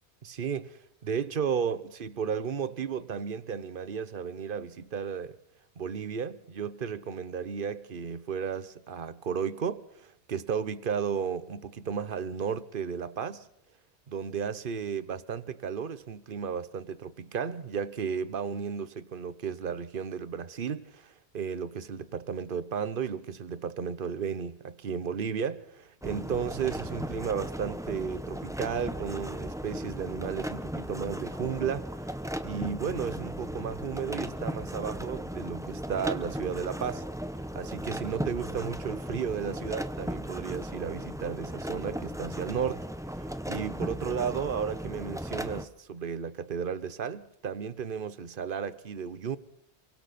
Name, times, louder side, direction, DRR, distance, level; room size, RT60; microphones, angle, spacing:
voice 1, 0.2-5.3 5.8-13.5 14.1-32.1 32.4-37.0 37.5-42.9 43.1-49.4, right 7 dB, 50° right, 1.1 m, -34 dB
sound 1, 26.0-45.6, equal, 5° right, 0.8 m, -36 dB
29.0 x 23.5 x 4.3 m
omnidirectional pair, 1.2 m